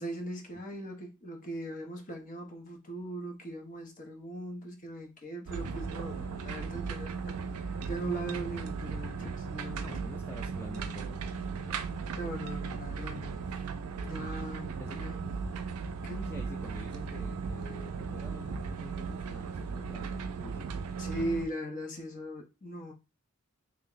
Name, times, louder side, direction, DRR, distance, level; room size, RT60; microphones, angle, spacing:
voice 1, 0.0-9.9 12.2-13.6 14.0-15.2 16.0-16.4 21.0-22.9, right 1 dB, 35° left, 0.8 m, -39 dB
sound 1, 5.5-21.5, right 5 dB, 80° right, 0.4 m, -37 dB
voice 2, 9.8-11.9 14.8-15.0 16.2-20.7, left 1 dB, 10° left, 0.4 m, -48 dB
3.4 x 2.1 x 3.7 m
head